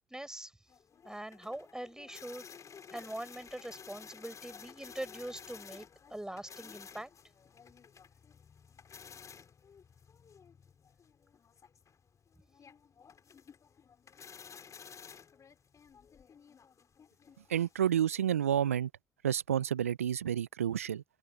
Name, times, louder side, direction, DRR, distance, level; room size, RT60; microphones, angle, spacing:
voice 1, 0.1-0.5 1.0-2.4 2.9-7.1, right 1 dB, 10° right, 5.1 m, -43 dB
sound 1, 0.7-18.6, left 6 dB, 45° left, 5.7 m, -54 dB
voice 2, 17.5-18.9 19.2-21.0, right 9 dB, 90° right, 0.5 m, -30 dB
open air
figure-of-eight pair, 45°, 7 cm